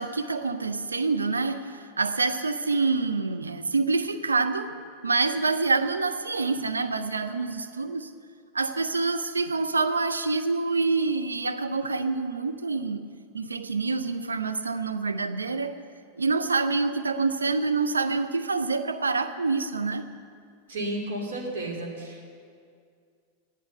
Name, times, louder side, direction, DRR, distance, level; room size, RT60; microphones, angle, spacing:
voice 1, 0.0-8.1 8.5-13.1 13.3-15.8 16.2-20.0, right 3 dB, 75° right, 8 dB, 0.6 m, -27 dB
voice 2, 20.7-22.3, right 1 dB, 60° right, -1 dB, 2.8 m, -32 dB
14.0 x 11.0 x 6.6 m, 2.2 s
figure-of-eight pair, 90°, 0 cm